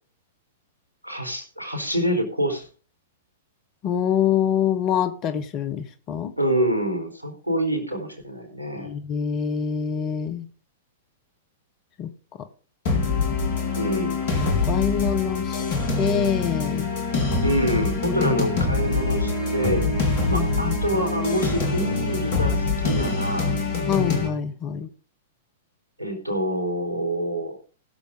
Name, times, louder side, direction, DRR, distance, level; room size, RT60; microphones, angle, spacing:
voice 1, 1.0-2.7 6.4-8.9 13.8-14.2 17.4-19.8 20.3-23.6 26.0-27.6, equal, 80° right, 4.2 m, -26 dB
voice 2, 3.8-6.4 8.8-10.5 12.0-12.1 14.4-15.6 16.0-16.9 20.3-20.7 23.9-24.9, left 8 dB, 35° left, 1.3 m, -25 dB
sound 1, 12.9-24.3, left 3 dB, 50° left, 3.6 m, -24 dB
20.0 x 7.0 x 3.8 m
figure-of-eight pair, 100°, 0 cm